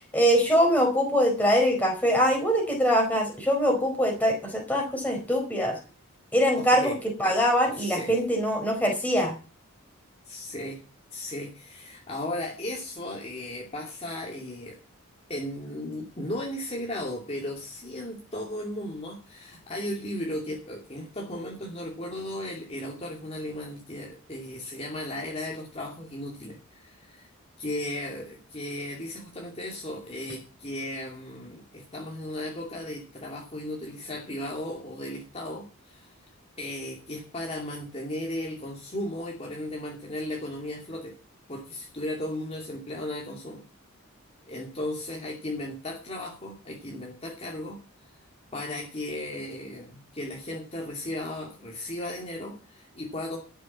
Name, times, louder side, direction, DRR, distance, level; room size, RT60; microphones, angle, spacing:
voice 1, 0.1-5.8 6.3-6.9 7.2-9.3, equal, 5° left, 2 dB, 4.4 m, -23 dB
voice 2, 6.6-7.0 7.2-7.4 7.7-8.2 10.3-10.8 11.1-14.8 15.3-27.3 27.6-36.1 36.6-41.2 41.5-43.6 44.5-47.8 48.5-53.4, left 1 dB, 30° left, -1 dB, 2.6 m, -36 dB
13.0 x 7.5 x 7.3 m, 0.34 s
head